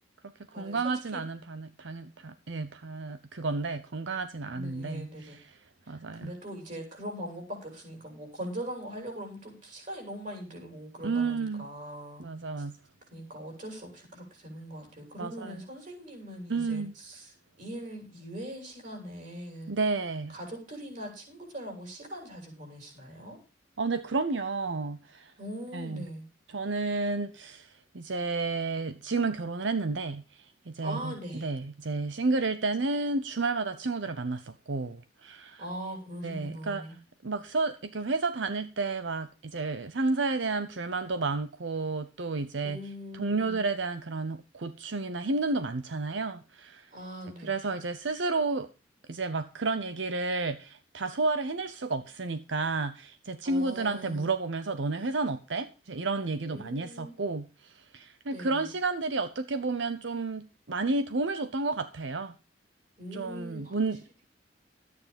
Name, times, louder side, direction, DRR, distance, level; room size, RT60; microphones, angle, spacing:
voice 1, 0.6-5.4 5.9-6.3 11.0-11.6 12.2-12.7 15.2-15.6 16.5-16.9 19.7-20.3 23.8-25.3 25.7-26.0 26.5-35.6 36.2-36.8 37.2-42.8 43.1-46.9 47.4-48.7 49.1-62.3 63.1-64.2, right 3 dB, 85° right, 0.8 m, -31 dB
voice 2, 4.5-5.4 5.9-12.2 12.6-12.7 13.1-17.3 17.6-19.7 20.3-23.4 25.4-26.3 30.8-31.5 35.6-37.0 42.6-43.6 46.9-47.5 53.4-54.3 56.5-57.2 58.3-58.7 63.0-63.8, equal, 45° right, 6.9 m, -41 dB
13.5 x 9.5 x 5.2 m
head